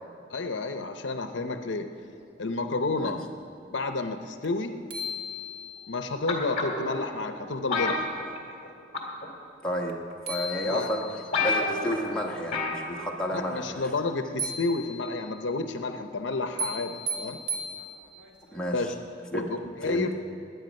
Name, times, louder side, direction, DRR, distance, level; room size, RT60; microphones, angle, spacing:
voice 1, 0.3-1.9 2.4-3.2 3.7-4.8 5.9-8.1 10.6-11.2 13.3-17.4 18.7-18.9 19.3-20.1, left 3 dB, 65° left, 7 dB, 0.7 m, -30 dB
sound 1, 4.4-4.5 4.9-6.0 9.9-10.0 10.3-11.3 14.4-15.3 16.6-18.3, right 1 dB, 60° right, 1.3 m, -35 dB
sound 2, 6.3-6.9 7.7-8.7 8.9-9.3 10.1-10.2 10.7-10.8 11.0-11.1 11.3-12.0 12.5-12.8 13.1-13.2, left 3 dB, 35° left, 2.0 m, -28 dB
voice 2, 9.6-9.9 10.3-11.0 11.4-13.8 18.5-18.8 19.3-19.5 19.8-20.1, equal, 5° left, -3 dB, 1.3 m, -31 dB
19.5 x 9.6 x 5.3 m, 2.7 s
head